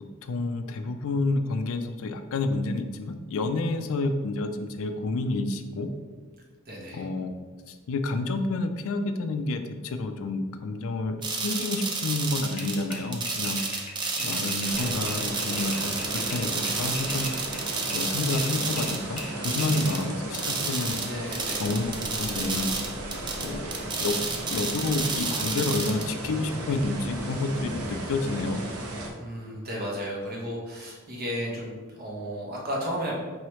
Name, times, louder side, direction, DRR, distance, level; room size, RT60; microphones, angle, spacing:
voice 1, 0.2-5.9 6.9-7.4 7.7-13.6 14.2-17.3 17.9-21.0 21.6-22.7 23.4-24.2 24.5-28.7, left 2 dB, 65° left, 8 dB, 0.4 m, -29 dB
voice 2, 6.7-7.1 14.2-14.9 21.1-21.7 29.2-33.1, equal, 45° right, -3 dB, 1.0 m, -34 dB
sound 1, 11.2-20.0 20.3-26.1, right 4 dB, 20° right, 0.4 m, -31 dB
sound 2, 12.6-18.1 18.3-19.9, left 2 dB, 30° left, 0.9 m, -41 dB
sound 3, 14.6-29.1, right 1 dB, 75° right, 0.7 m, -35 dB
4.6 x 3.0 x 3.1 m, 1.4 s
head